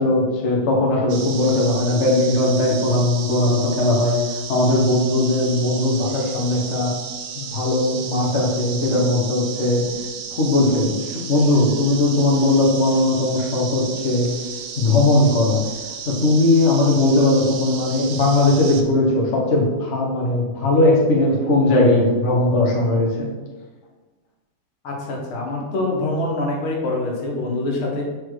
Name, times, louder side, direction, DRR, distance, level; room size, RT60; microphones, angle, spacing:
voice 1, 0.0-4.2 4.5-6.9 7.5-9.8 10.3-14.3 14.8-15.6 16.0-23.3, left 2 dB, 40° left, -2 dB, 1.2 m, -19 dB
sound 1, 1.1-18.8, right 6 dB, 90° right, 1.5 m, -33 dB
voice 2, 24.8-28.0, left 2 dB, 80° left, -1 dB, 2.0 m, -25 dB
4.8 x 4.2 x 4.7 m, 1.3 s
omnidirectional pair, 2.3 m